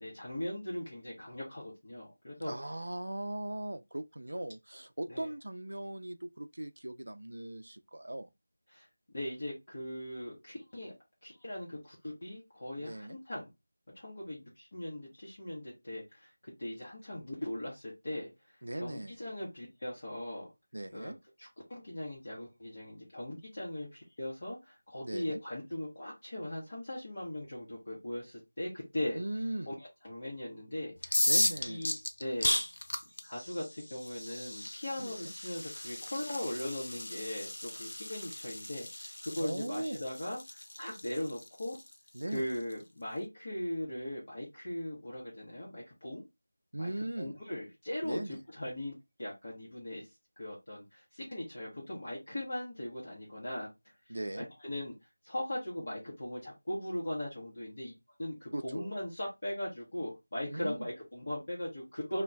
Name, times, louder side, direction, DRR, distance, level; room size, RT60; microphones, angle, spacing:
voice 1, 0.0-2.5 5.1-5.3 8.7-10.9 11.2-13.5 14.0-20.5 20.9-21.1 21.4-29.2 29.7-29.8 30.0-31.2 31.7-31.9 32.2-32.6 33.2-41.8 42.3-46.2 46.8-46.9 47.2-48.2 48.6-48.9 49.2-50.1 50.4-53.7 54.4-54.9 55.2-57.9 58.2-62.2, left 1 dB, 30° left, 0.7 m, -39 dB
voice 2, 2.4-8.3 12.8-13.2 18.6-19.3 20.7-21.2 25.0-25.4 29.2-29.7 31.3-31.9 35.0-35.3 39.4-40.0 42.1-42.5 46.7-47.4 48.0-48.4 54.1-54.5 58.5-58.9 60.5-60.9, right 1 dB, 85° right, 0.4 m, -39 dB
sound 1, 31.0-42.7, left 1 dB, 55° left, 0.3 m, -36 dB
2.2 x 2.1 x 3.6 m
figure-of-eight pair, 180°, 0 cm